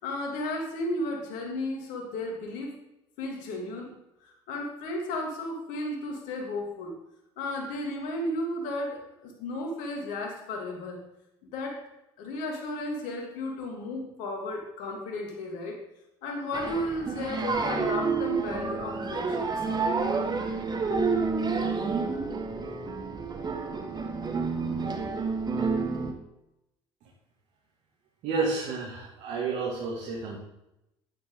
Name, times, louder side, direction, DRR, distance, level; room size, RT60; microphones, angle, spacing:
voice 1, 0.0-2.7 3.2-3.9 4.2-7.0 7.4-11.0 11.4-11.9 12.2-15.8 16.2-19.7, left 1 dB, 70° left, 2 dB, 3.0 m, -34 dB
sound 1, 16.5-26.1, right 4 dB, 30° right, 2.0 m, -29 dB
voice 2, 28.2-30.4, right 4 dB, 65° right, -3 dB, 2.9 m, -30 dB
12.0 x 9.9 x 4.0 m, 0.87 s
hypercardioid pair, 60°, 14 cm